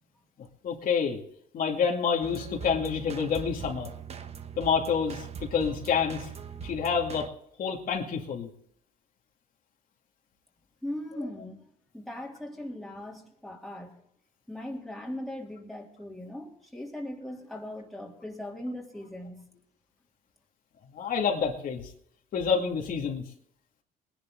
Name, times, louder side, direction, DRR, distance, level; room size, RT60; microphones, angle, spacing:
voice 1, 0.6-1.2 1.5-3.9 4.6-6.3 6.6-7.3 7.6-8.5 20.9-21.9 22.3-23.2, left 6 dB, 55° left, 0 dB, 2.4 m, -28 dB
sound 1, 2.2-7.3, right 6 dB, 40° right, 1.1 m, -41 dB
voice 2, 10.8-11.6 11.9-14.0 14.5-19.5, left 1 dB, ahead, -3 dB, 3.2 m, -39 dB
20.0 x 11.0 x 3.9 m, 0.69 s
cardioid pair, 110°, 17 cm